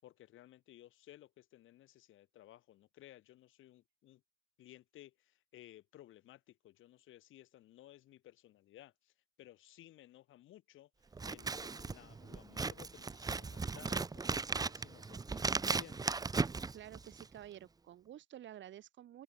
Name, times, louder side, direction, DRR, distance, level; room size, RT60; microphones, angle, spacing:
voice 1, 0.0-4.2 4.6-9.1 9.4-14.3 14.6-16.1, left 14 dB, 85° left, 7.7 m, -58 dB
Scissors, 11.1-17.4, right 4 dB, 20° right, 0.5 m, -37 dB
voice 2, 16.7-19.2, right 11 dB, 70° right, 2.0 m, -51 dB
cardioid pair, 90°, 20 cm